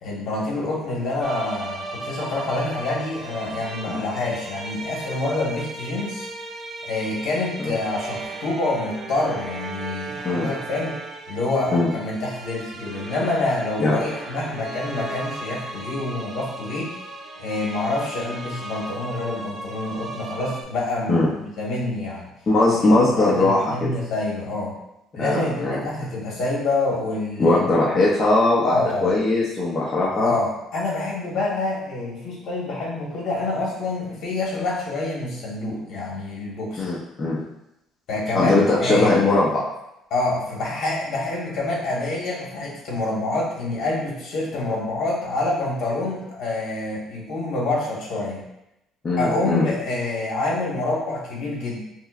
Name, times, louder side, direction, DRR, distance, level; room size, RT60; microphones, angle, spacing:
voice 1, 0.0-6.3 6.8-11.0 11.3-16.9 17.4-22.2 22.8-22.9 23.2-24.7 25.1-27.6 28.6-29.2 30.2-36.8 38.1-39.2 40.1-48.4 49.2-51.8, left 2 dB, 65° left, -5 dB, 1.3 m, -27 dB
sound 1, 1.2-20.6, right 2 dB, 35° right, 0.6 m, -36 dB
voice 2, 22.5-23.9 25.1-25.8 27.4-30.3 36.8-37.4 38.3-39.6 49.0-49.6, left 2 dB, 30° left, -6 dB, 0.6 m, -20 dB
5.3 x 2.0 x 2.4 m, 0.87 s
cardioid pair, 115°, 0 cm